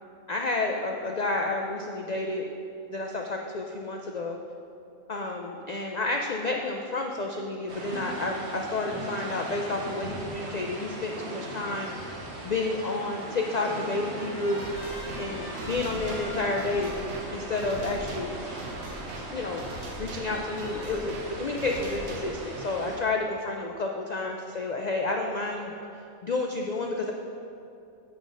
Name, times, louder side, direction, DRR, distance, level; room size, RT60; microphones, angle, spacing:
voice 1, 0.3-2.5 2.9-4.4 5.1-14.6 15.2-17.0 17.3-18.3 19.1-19.7 20.0-25.7 26.2-27.1, left 2 dB, 75° left, 2 dB, 0.3 m, -30 dB
sound 1, 7.7-23.0, right 1 dB, 55° right, 1.4 m, -39 dB
Trumpet, 13.2-19.3, left 1 dB, 35° left, 2.0 m, -47 dB
sound 2, 14.6-22.6, right 2 dB, 90° right, 1.4 m, -42 dB
7.9 x 6.1 x 5.2 m, 2.6 s
omnidirectional pair, 1.4 m